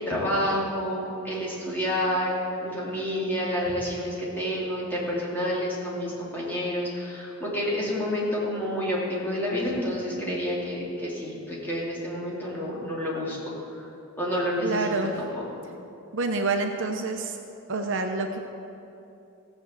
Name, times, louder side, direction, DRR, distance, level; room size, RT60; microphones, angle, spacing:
voice 1, 0.0-2.4 2.6-13.8 14.2-15.4, equal, 10° left, -6 dB, 2.8 m, -29 dB
voice 2, 14.6-15.1 16.1-17.4 17.7-18.4, right 3 dB, 60° right, 4 dB, 0.9 m, -27 dB
15.5 x 6.2 x 8.1 m, 2.8 s
head